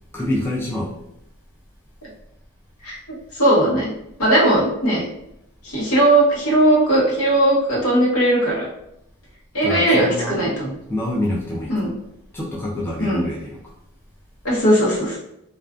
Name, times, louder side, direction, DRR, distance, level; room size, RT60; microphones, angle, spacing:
voice 1, 0.1-1.0 9.6-10.4 10.9-11.9 12.3-13.6, left 1 dB, 10° left, -4 dB, 0.3 m, -26 dB
voice 2, 3.4-3.9 4.2-5.0 5.7-8.7 9.5-10.7 11.7-11.9 13.0-13.2 14.4-15.2, right 1 dB, 75° left, -5 dB, 1.0 m, -18 dB
2.4 x 2.3 x 2.3 m, 0.81 s
head